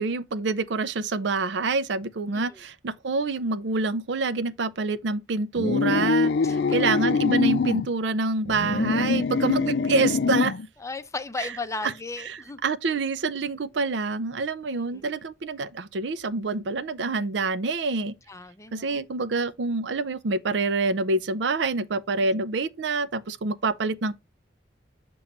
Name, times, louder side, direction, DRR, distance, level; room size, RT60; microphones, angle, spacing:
voice 1, 0.0-10.5 11.4-11.5 11.8-11.9 12.2-18.2 18.7-24.1, right 3 dB, 75° right, 0.5 m, -27 dB
sound 1, 5.6-7.9 8.5-10.7, left 5 dB, 65° left, 0.4 m, -24 dB
voice 2, 10.8-12.6 14.7-15.0 18.3-19.0, left 3 dB, 15° left, 0.5 m, -36 dB
7.2 x 3.0 x 5.1 m
head